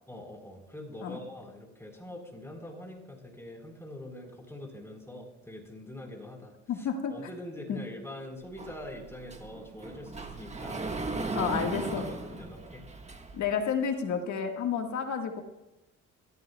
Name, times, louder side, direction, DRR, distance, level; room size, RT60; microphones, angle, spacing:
voice 1, 0.1-10.9 11.2-11.5 11.9-12.8, left 1 dB, 10° left, 2 dB, 4.4 m, -44 dB
voice 2, 6.7-7.1 7.7-7.8 11.3-12.1 13.3-15.4, left 6 dB, 70° left, 4 dB, 1.7 m, -30 dB
Sliding door, 8.6-13.5, right 3 dB, 20° right, 1.5 m, -37 dB
22.5 x 14.0 x 2.3 m, 0.96 s
cardioid pair, 90°, 30 cm